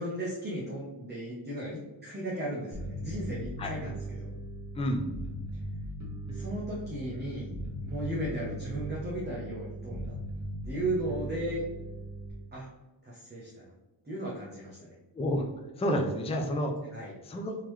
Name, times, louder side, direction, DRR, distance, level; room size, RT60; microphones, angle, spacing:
voice 1, 0.0-4.3 6.3-7.5 7.8-10.1 10.6-11.6 12.5-12.7 13.0-13.6 14.1-14.9 16.9-17.1, right 1 dB, 25° right, -5 dB, 0.8 m, -35 dB
Bass guitar, 2.7-12.3, right 1 dB, 40° right, 1.2 m, -39 dB
voice 2, 4.7-5.1 15.1-15.5 15.8-16.8 17.2-17.6, equal, 15° left, 3 dB, 0.4 m, -29 dB
3.7 x 3.0 x 3.1 m, 1.1 s
wide cardioid pair, 120°, 44 cm